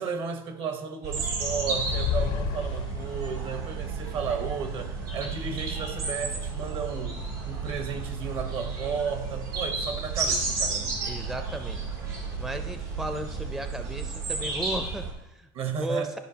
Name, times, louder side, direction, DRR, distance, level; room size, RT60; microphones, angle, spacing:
voice 1, 0.0-11.0 15.5-16.2, right 6 dB, 55° right, 1.0 m, -33 dB
sound 1, 1.0-15.1, right 4 dB, 85° right, 2.1 m, -32 dB
sound 2, 1.7-3.4, left 8 dB, 65° left, 0.6 m, -30 dB
voice 2, 11.1-11.8 12.4-15.5 15.8-16.2, right 1 dB, 5° right, 0.5 m, -35 dB
12.5 x 4.8 x 2.8 m
supercardioid pair, 95°, 11 cm